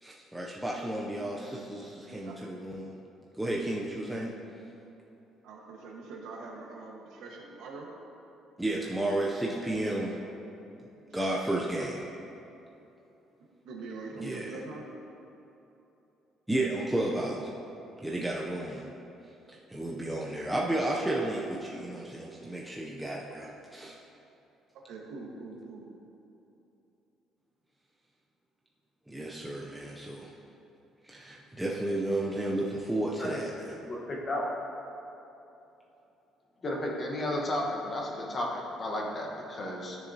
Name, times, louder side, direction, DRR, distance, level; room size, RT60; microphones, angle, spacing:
voice 1, 0.0-2.9 3.4-4.3 8.6-10.2 11.1-12.0 14.2-14.5 16.5-17.5 18.0-18.8 19.5-24.0 29.1-30.3 31.0-33.8, right 1 dB, 5° right, -4 dB, 0.5 m, -32 dB
voice 2, 5.4-7.9 11.1-11.2 13.6-14.9 18.6-18.7 24.9-25.9, right 3 dB, 70° right, -1 dB, 1.3 m, -43 dB
voice 3, 33.8-34.4 36.6-40.0, left 1 dB, 25° left, -2 dB, 1.1 m, -33 dB
13.5 x 6.8 x 2.8 m, 2.9 s
cardioid pair, 170°, 0 cm